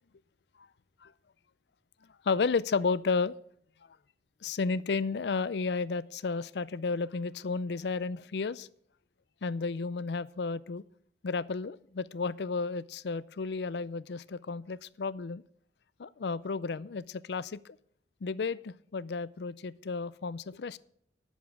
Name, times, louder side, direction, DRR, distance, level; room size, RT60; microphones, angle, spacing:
voice 1, 2.2-3.4 4.4-8.7 9.4-10.8 11.2-15.4 16.0-17.8 18.2-20.8, left 4 dB, 65° left, 18 dB, 0.5 m, -32 dB
10.5 x 7.2 x 6.1 m, 0.67 s
head